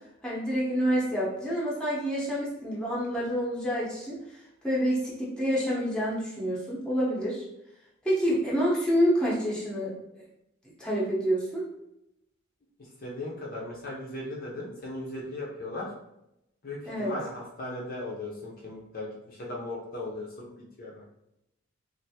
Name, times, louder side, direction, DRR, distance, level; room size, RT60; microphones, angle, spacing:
voice 1, 0.2-4.2 4.6-7.4 8.0-10.2 10.8-11.7 16.9-17.1, equal, 5° left, -6 dB, 0.8 m, -28 dB
voice 2, 13.0-15.9 16.6-20.5 20.8-21.0, left 2 dB, 45° left, -3 dB, 0.6 m, -37 dB
3.3 x 2.5 x 2.7 m, 0.85 s
head